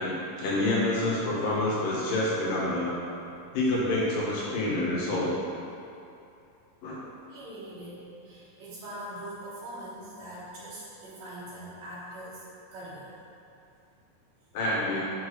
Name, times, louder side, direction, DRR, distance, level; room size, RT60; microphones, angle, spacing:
voice 1, 0.0-2.9 3.5-5.3 6.8-7.0 14.5-15.0, left 1 dB, 90° left, -6 dB, 3.1 m, -27 dB
voice 2, 7.3-12.4 12.7-13.1, right 1 dB, 80° right, -10 dB, 3.1 m, -42 dB
7.1 x 6.4 x 3.1 m, 2.6 s
omnidirectional pair, 3.8 m